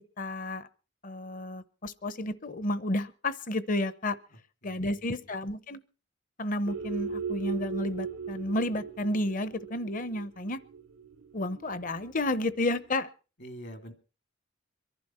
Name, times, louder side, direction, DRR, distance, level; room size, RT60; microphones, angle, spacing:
voice 1, 0.2-0.7 1.0-4.2 4.6-5.8 6.4-10.6 11.3-13.1, left 1 dB, 45° left, 15 dB, 0.8 m, -31 dB
voice 2, 4.3-5.1 13.4-13.9, equal, 65° left, 7 dB, 2.7 m, -46 dB
sound 1, 6.7-12.8, right 5 dB, 90° right, 0.7 m, -38 dB
24.5 x 11.0 x 4.3 m, 0.36 s
head